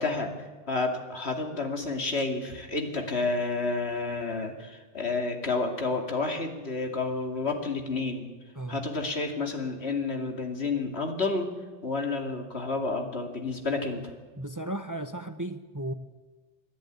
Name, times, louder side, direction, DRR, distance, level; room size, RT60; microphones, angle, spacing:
voice 1, 0.0-8.3 8.7-11.5 11.8-14.1, left 3 dB, 80° left, 4 dB, 2.9 m, -30 dB
voice 2, 14.4-15.9, right 1 dB, 20° right, 10 dB, 0.8 m, -35 dB
27.0 x 10.5 x 9.3 m, 1.3 s
omnidirectional pair, 1.1 m